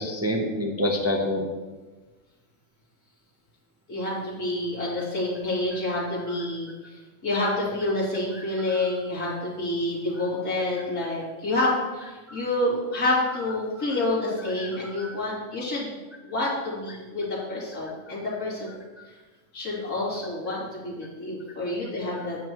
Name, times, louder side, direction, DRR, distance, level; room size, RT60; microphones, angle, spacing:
voice 1, 0.0-1.5 6.3-6.4 8.3-9.0 9.3-9.4 10.2-10.3 12.3-12.4 12.9-13.0 13.3-13.5 13.7-14.0 14.4-15.2 19.0-19.1 22.2-22.3, left 1 dB, 15° right, -1 dB, 0.8 m, -30 dB
voice 2, 3.9-16.0 16.2-18.7 19.5-22.4, left 2 dB, 85° left, -7 dB, 3.4 m, -28 dB
9.0 x 9.0 x 3.1 m, 1.2 s
omnidirectional pair, 1.5 m